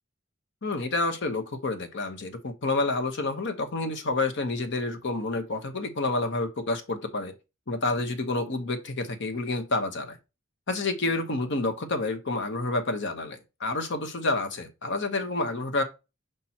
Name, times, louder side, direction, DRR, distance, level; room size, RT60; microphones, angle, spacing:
voice 1, 0.6-7.3 7.7-10.2 10.7-15.8, left 2 dB, 60° left, 1.0 m, -29 dB
5.1 x 4.3 x 4.2 m
head